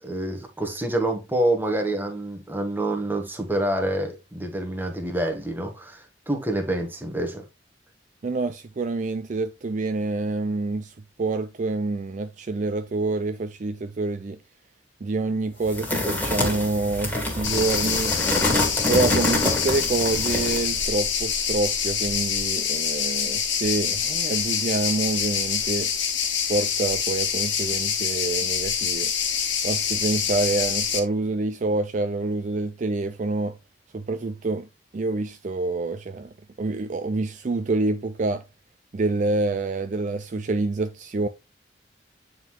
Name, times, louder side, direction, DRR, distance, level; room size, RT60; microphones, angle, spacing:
voice 1, 0.0-7.4, right 1 dB, 10° right, 1.2 m, -27 dB
voice 2, 8.2-14.4 15.0-18.2 18.9-25.9 26.5-29.1 29.6-33.6 33.9-34.7 34.9-38.4 38.9-41.3, right 3 dB, 40° right, 0.4 m, -27 dB
sound 1, 15.7-20.7, left 1 dB, 10° left, 2.0 m, -26 dB
sound 2, 17.4-31.0, left 7 dB, 80° left, 1.4 m, -26 dB
9.1 x 3.8 x 3.0 m
head